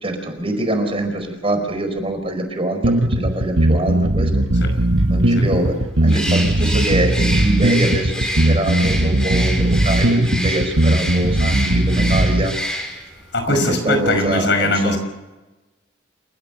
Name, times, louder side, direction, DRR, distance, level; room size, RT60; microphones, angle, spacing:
voice 1, 0.0-4.4 5.1-5.7 6.0-12.5 13.5-15.0, right 1 dB, 30° right, 6 dB, 4.9 m, -24 dB
sound 1, 2.8-12.4, right 1 dB, 80° right, 1.7 m, -18 dB
Bird, 6.1-13.1, equal, 5° left, 5.5 m, -27 dB
voice 2, 13.3-15.0, left 2 dB, 60° left, 7 dB, 5.8 m, -20 dB
29.0 x 16.5 x 6.9 m, 1.1 s
head